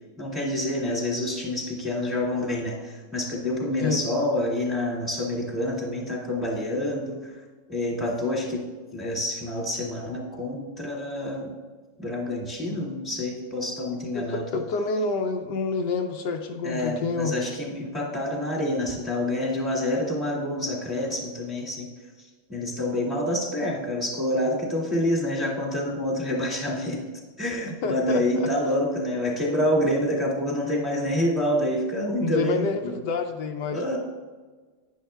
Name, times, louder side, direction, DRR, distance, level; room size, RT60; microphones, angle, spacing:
voice 1, 0.2-7.3 7.7-11.5 12.0-14.4 16.6-21.9 22.5-27.0 27.4-32.9 33.7-34.0, left 1 dB, ahead, -5 dB, 2.0 m, -27 dB
voice 2, 14.1-17.3 27.8-28.5 32.2-34.0, left 4 dB, 80° left, 4 dB, 1.3 m, -28 dB
10.5 x 10.5 x 2.3 m, 1.4 s
omnidirectional pair, 1.9 m